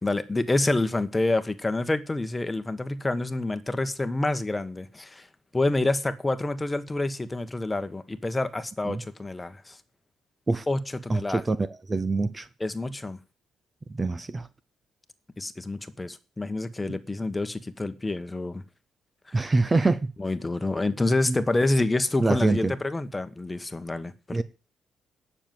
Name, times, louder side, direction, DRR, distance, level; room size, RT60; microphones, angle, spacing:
voice 1, 0.0-5.3 5.5-9.8 10.7-11.4 12.6-13.2 15.4-18.6 19.3-19.5 20.2-24.4, left 2 dB, 15° left, 1.3 m, -28 dB
voice 2, 11.1-12.5 13.9-14.5 19.3-20.1 21.3-21.4 22.2-22.7 24.3-24.4, right 3 dB, 25° right, 0.9 m, -25 dB
10.0 x 6.8 x 9.2 m
cardioid pair, 90°, 0 cm